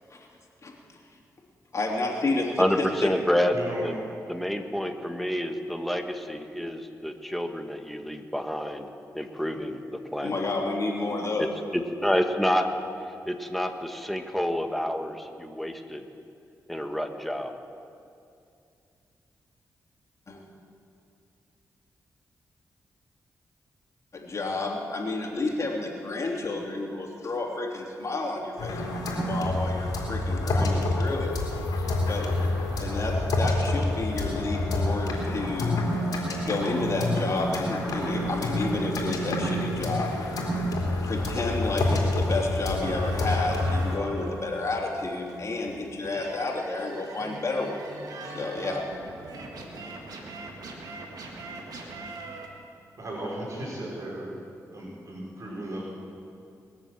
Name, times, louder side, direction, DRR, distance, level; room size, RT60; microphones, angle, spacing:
voice 1, 1.7-3.1 10.2-11.5 20.3-20.4 24.1-31.4 32.0-32.3 32.8-35.8 36.4-40.1 41.0-47.8 48.2-48.8, left 2 dB, 55° left, -1 dB, 3.0 m, -30 dB
voice 2, 2.6-3.9 4.3-10.4 11.4-12.7 13.2-16.0 16.7-17.5, equal, ahead, 5 dB, 1.5 m, -28 dB
voice 3, 3.5-3.9 53.0-54.4 54.7-55.9, right 1 dB, 55° right, -4 dB, 4.2 m, -36 dB
sound 1, 28.6-44.0, left 1 dB, 85° left, 3.2 m, -28 dB
sound 2, 42.8-52.5, right 3 dB, 80° right, 1.9 m, -42 dB
21.5 x 7.4 x 7.4 m, 2.5 s
cardioid pair, 55°, 6 cm